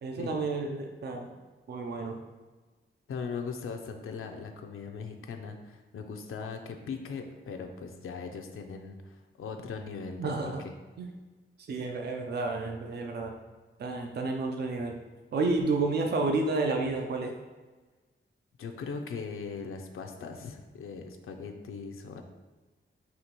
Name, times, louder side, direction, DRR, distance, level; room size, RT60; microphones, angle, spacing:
voice 1, 0.0-1.3 1.7-2.2 10.2-10.6 11.0-11.1 11.7-13.3 13.8-14.9 15.3-17.3, right 3 dB, 50° right, 3 dB, 0.5 m, -30 dB
voice 2, 3.1-10.5 18.6-22.2, left 5 dB, 80° left, 4 dB, 0.5 m, -39 dB
5.6 x 2.9 x 2.9 m, 1.3 s
wide cardioid pair, 130°, 21 cm